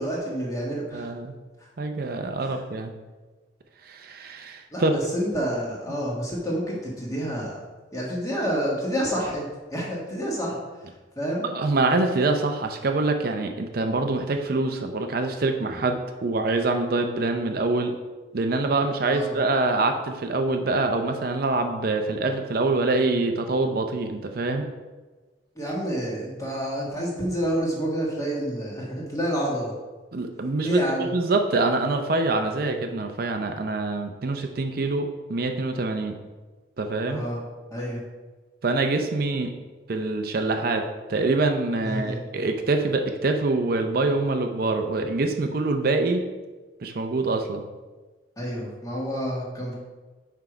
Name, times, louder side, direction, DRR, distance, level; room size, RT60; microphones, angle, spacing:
voice 1, 0.0-1.0 2.4-2.5 4.7-7.6 7.9-10.5 11.2-11.4 19.1-19.4 25.6-29.7 30.6-31.1 37.0-37.4 37.7-38.0 41.8-42.2 48.4-49.8, equal, 20° left, -4 dB, 1.6 m, -28 dB
voice 2, 0.9-1.3 1.8-2.9 3.9-4.9 11.4-18.0 18.3-24.7 30.1-36.1 36.8-37.2 38.6-39.5 39.9-40.8 41.1-46.2 46.8-47.6, right 3 dB, 55° right, 5 dB, 0.5 m, -25 dB
5.8 x 4.6 x 5.0 m, 1.3 s
head